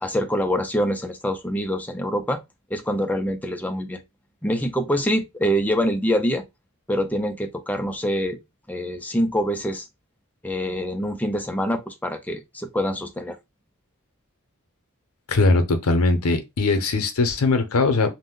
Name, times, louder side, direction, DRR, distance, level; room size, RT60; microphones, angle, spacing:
voice 1, 0.0-2.4 2.7-4.0 4.4-6.4 6.9-8.4 8.7-9.9 10.4-13.4, equal, 5° left, 0.4 m, -25 dB
voice 2, 15.3-18.1, left 3 dB, 80° left, 0.7 m, -20 dB
2.5 x 2.1 x 3.6 m
head